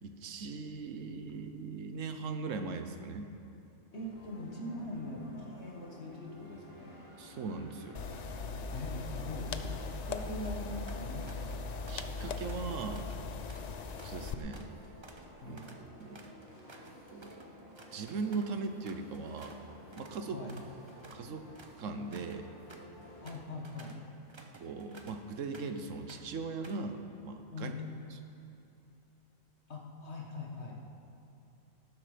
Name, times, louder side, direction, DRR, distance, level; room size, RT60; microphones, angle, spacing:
voice 1, 0.0-3.3 7.2-8.0 11.9-13.1 14.0-14.7 15.4-15.7 16.0-16.2 17.1-17.3 17.9-19.6 20.0-20.4 21.1-21.5 21.8-22.5 24.5-27.7, right 4 dB, 70° right, 7 dB, 1.2 m, -39 dB
sound 1, 3.9-23.3, equal, 85° left, 2.7 m, -53 dB
voice 2, 3.9-7.0 8.7-11.6 15.4-15.7 20.3-20.5 23.2-24.0 27.5-27.8 29.7-30.8, left 2 dB, 55° left, -1 dB, 1.9 m, -42 dB
sound 2, 7.9-14.3, left 4 dB, 70° left, 0.4 m, -39 dB
sound 3, 10.4-10.6 10.9-11.6 11.9-19.6 19.9-20.2 20.5-25.8 26.1-26.9, right 2 dB, 25° right, 0.7 m, -55 dB
13.0 x 12.0 x 5.1 m, 2.9 s
omnidirectional pair, 1.4 m